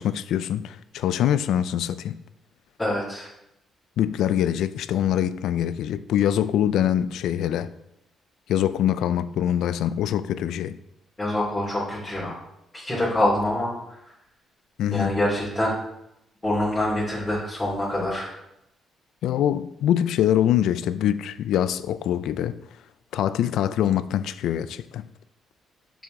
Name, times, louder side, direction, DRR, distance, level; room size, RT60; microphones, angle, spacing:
voice 1, 0.0-2.2 4.0-7.7 8.5-10.8 14.8-15.1 19.2-22.6 23.1-25.0, left 10 dB, 80° left, 0.3 m, -24 dB
voice 2, 2.8-3.3 11.2-12.3 12.7-13.7 14.9-15.7 16.4-18.3, left 1 dB, 15° left, 2.6 m, -25 dB
6.9 x 6.1 x 3.7 m
cardioid pair, 90°, 0 cm